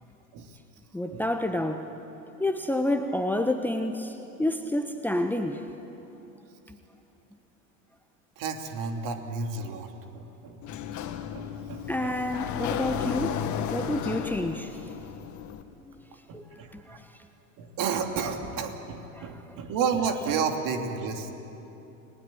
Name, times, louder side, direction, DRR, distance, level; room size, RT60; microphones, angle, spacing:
voice 1, 0.9-1.9 2.4-5.6 6.7-6.8 11.9-13.4 13.7-14.8 15.8-17.1 19.1-19.3, left 1 dB, 5° left, 7 dB, 1.3 m, -29 dB
voice 2, 8.4-10.6 11.3-12.2 13.8-14.2 16.3-17.0 17.6-21.3, right 5 dB, 45° right, 4 dB, 3.0 m, -32 dB
Sliding door, 10.6-15.6, left 8 dB, 40° left, 2.1 m, -33 dB
30.0 x 20.0 x 8.9 m, 3.0 s
figure-of-eight pair, 80°, 44 cm